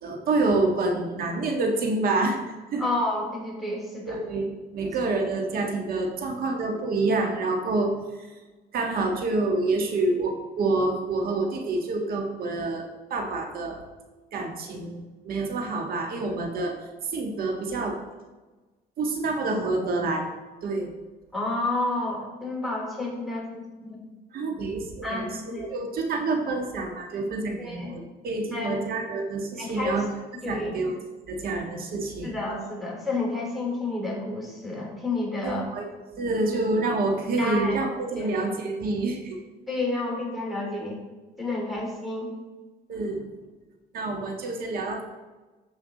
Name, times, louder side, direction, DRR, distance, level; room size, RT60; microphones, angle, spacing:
voice 1, 0.0-2.4 2.7-2.8 4.1-7.9 8.2-8.3 8.7-13.8 14.3-16.8 17.1-18.0 19.0-20.2 20.6-20.9 24.3-30.1 30.5-31.0 31.3-32.3 35.4-35.8 36.2-39.4 42.9-43.2 43.9-45.0, right 3 dB, 60° right, 2 dB, 1.7 m, -27 dB
voice 2, 2.8-4.2 21.3-24.0 25.0-25.7 27.6-28.0 28.5-28.9 29.6-30.0 30.4-30.7 32.2-35.7 37.4-37.8 38.2-38.3 39.7-41.0 41.4-42.3, left 2 dB, ahead, -3 dB, 3.6 m, -30 dB
14.0 x 5.7 x 4.1 m, 1.2 s
cardioid pair, 110°, 17 cm